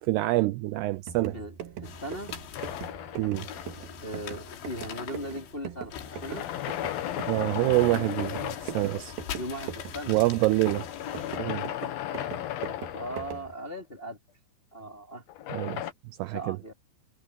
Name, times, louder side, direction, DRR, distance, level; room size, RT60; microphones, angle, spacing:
voice 1, 0.0-1.4 3.2-3.5 7.3-9.1 10.1-10.9 11.4-11.7 15.5-16.6, right 19 dB, 80° right, 2.4 m, -26 dB
sound 1, 0.9-13.5, right 9 dB, 65° right, 3.2 m, -42 dB
sound 2, 1.8-11.4, left 9 dB, 80° left, 4.4 m, -43 dB
voice 2, 1.8-2.3 4.0-6.5 9.3-10.2 12.9-14.2 14.7-15.2 16.3-16.7, right 1 dB, 15° left, 2.1 m, -38 dB
sound 3, 2.6-4.1 6.0-9.1 10.6-13.8 15.3-15.9, left 12 dB, 65° left, 2.9 m, -35 dB
omnidirectional pair, 5.1 m